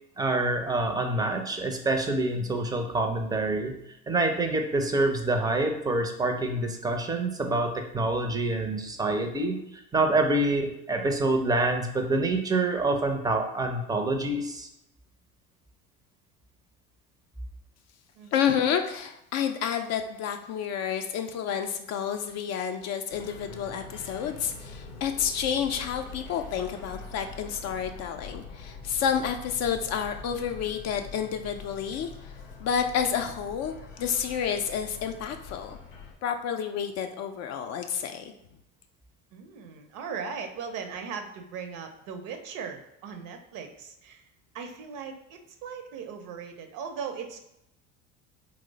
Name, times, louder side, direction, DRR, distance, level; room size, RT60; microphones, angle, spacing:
voice 1, 0.2-3.8 4.1-14.7, right 2 dB, 10° right, 4 dB, 0.5 m, -26 dB
voice 2, 18.3-32.3 32.6-33.7 34.0-35.8 36.2-38.3, left 8 dB, 45° left, 6 dB, 0.4 m, -30 dB
sound 1, 23.1-36.1, left 4 dB, 90° left, 0.7 m, -44 dB
voice 3, 39.3-44.3 44.5-47.4, right 6 dB, 55° right, 6 dB, 0.6 m, -38 dB
3.0 x 2.0 x 3.9 m, 0.83 s
hypercardioid pair, 70°, 38 cm